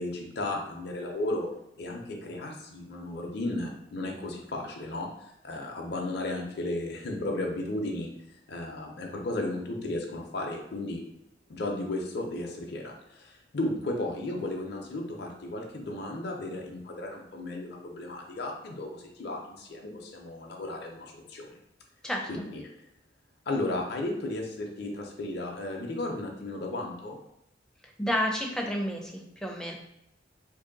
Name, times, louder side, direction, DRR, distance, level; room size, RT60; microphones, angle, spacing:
voice 1, 0.0-1.5 1.8-5.1 5.4-8.1 8.5-11.0 11.5-21.5 22.3-22.6 23.5-27.2, left 2 dB, 60° left, 0 dB, 0.5 m, -34 dB
voice 2, 28.0-29.7, equal, 5° left, 0 dB, 0.4 m, -30 dB
2.9 x 2.7 x 3.8 m, 0.83 s
head